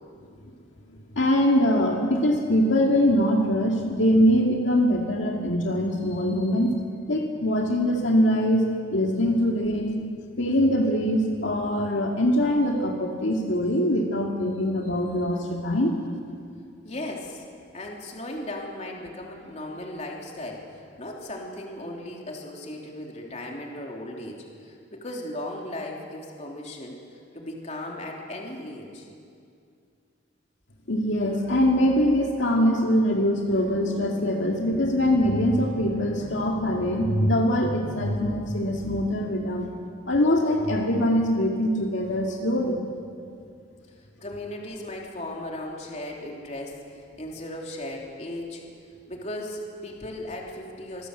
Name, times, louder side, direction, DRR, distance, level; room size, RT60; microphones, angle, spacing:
voice 1, 1.2-6.7 7.1-10.0 10.4-16.0 30.9-39.7 40.1-42.8, equal, 70° left, 0 dB, 2.1 m, -23 dB
voice 2, 16.8-17.5 17.7-29.1 44.0-48.7 49.1-51.1, left 1 dB, 35° left, 0 dB, 3.3 m, -37 dB
26.0 x 17.0 x 8.0 m, 2.4 s
head